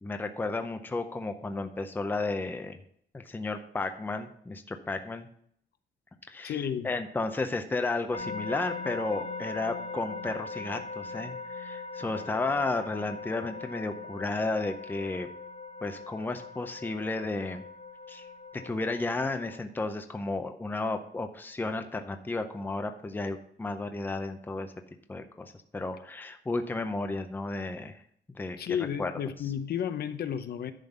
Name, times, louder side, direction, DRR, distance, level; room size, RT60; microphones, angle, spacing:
voice 1, 0.0-2.8 3.1-5.3 6.3-15.3 15.8-17.6 18.1-18.3 18.5-24.7 25.1-28.0 28.3-29.1, left 3 dB, 10° left, 7 dB, 0.6 m, -33 dB
voice 2, 6.4-6.9 28.6-30.7, left 8 dB, 55° left, 10 dB, 0.7 m, -32 dB
sound 1, 8.1-19.6, left 3 dB, 40° left, 1.7 m, -41 dB
10.5 x 3.8 x 6.6 m, 0.64 s
wide cardioid pair, 175°, 19 cm